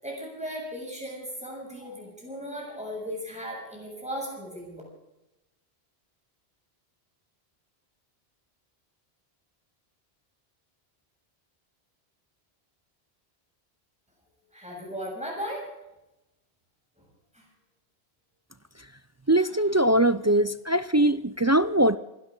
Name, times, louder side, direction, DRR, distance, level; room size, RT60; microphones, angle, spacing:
voice 1, 0.0-4.8 14.5-15.6 17.0-17.1 17.3-17.5 19.4-19.5 19.8-20.0, equal, 5° right, -2 dB, 7.3 m, -37 dB
voice 2, 19.3-22.0, right 1 dB, 25° right, 13 dB, 0.3 m, -21 dB
27.0 x 13.0 x 3.9 m, 0.92 s
omnidirectional pair, 1.1 m